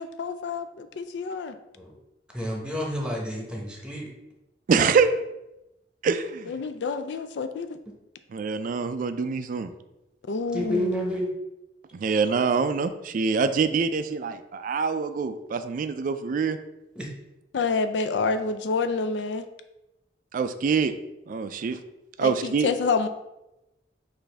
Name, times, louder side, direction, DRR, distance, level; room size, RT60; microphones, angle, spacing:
voice 1, 0.0-1.6 6.5-7.8 10.3-11.1 17.5-19.4 22.2-23.1, left 4 dB, 80° left, 9 dB, 0.4 m, -28 dB
voice 2, 2.3-4.1 10.5-11.3 16.9-17.1, equal, 5° right, -1 dB, 0.9 m, -30 dB
voice 3, 4.7-5.1 6.0-6.5 8.3-9.7 11.9-16.6 20.3-20.9 21.3-21.8 22.2-22.7, right 5 dB, 50° right, 10 dB, 0.3 m, -25 dB
6.0 x 2.6 x 3.3 m, 0.93 s
head